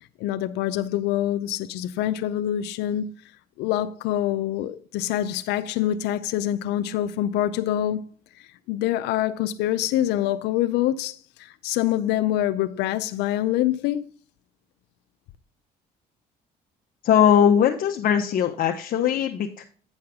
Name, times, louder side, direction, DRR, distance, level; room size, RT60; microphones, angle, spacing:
voice 1, 0.2-3.1 3.6-8.0 8.7-14.1, left 12 dB, 85° left, 0.5 m, -25 dB
voice 2, 17.0-19.6, left 9 dB, 55° left, 0.8 m, -20 dB
9.5 x 6.4 x 3.6 m
cardioid pair, 110°, 17 cm